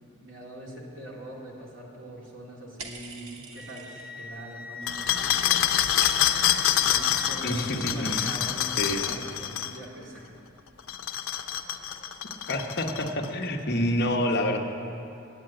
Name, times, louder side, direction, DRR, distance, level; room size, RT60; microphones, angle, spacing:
voice 1, 0.2-10.3, equal, 65° right, -3 dB, 2.3 m, -43 dB
sound 1, 2.8-4.4 4.7-5.2 5.5-6.5, right 4 dB, 90° right, 1.1 m, -44 dB
Wind instrument woodwind instrument, 3.5-7.4, left 1 dB, 5° right, 0.8 m, -43 dB
sound 2, 4.9-9.8 10.8-13.3, left 10 dB, 80° left, 0.6 m, -26 dB
voice 2, 7.4-8.2 8.8-9.1 12.5-14.6, left 1 dB, 55° left, 2 dB, 1.0 m, -27 dB
9.4 x 8.6 x 8.8 m, 2.7 s
head